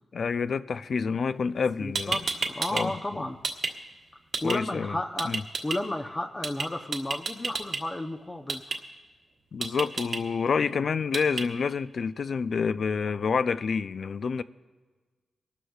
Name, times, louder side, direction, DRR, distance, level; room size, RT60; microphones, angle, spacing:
voice 1, 0.1-2.2 2.7-3.3 4.4-5.0 5.2-5.4 9.5-14.4, left 5 dB, 60° left, 0.4 m, -28 dB
sound 1, 1.6-1.7 1.9-2.8 3.1-3.7 4.3-4.6 5.2-5.8 6.4-6.6 6.9-7.8 8.5-8.8 9.6-10.2 11.1-11.4, right 4 dB, 65° right, 1.3 m, -29 dB
voice 2, 1.8-3.4 4.4-5.3 5.6-8.8, left 1 dB, 20° left, 0.6 m, -33 dB
25.0 x 12.5 x 2.4 m
cardioid pair, 90°, 0 cm